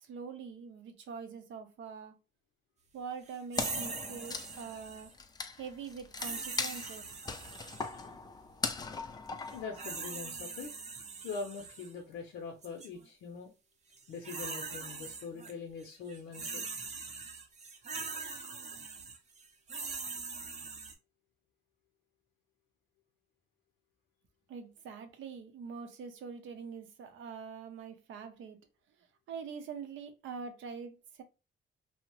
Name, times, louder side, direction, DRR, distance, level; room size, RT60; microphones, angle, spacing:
voice 1, 0.0-2.1 2.9-5.1 5.6-7.1 24.5-28.6 29.3-31.2, right 6 dB, 75° right, 0.6 m, -44 dB
sound 1, 3.5-5.1 6.2-8.0 9.5-11.9 12.6-12.9 13.9-15.5 15.8-20.9, right 4 dB, 35° right, 0.6 m, -42 dB
Wood, 3.6-10.3, left 4 dB, 20° left, 0.3 m, -40 dB
voice 2, 9.5-10.7 11.2-13.5 14.1-16.7, left 5 dB, 75° left, 0.6 m, -43 dB
2.8 x 2.0 x 2.9 m
cardioid pair, 90°, 20 cm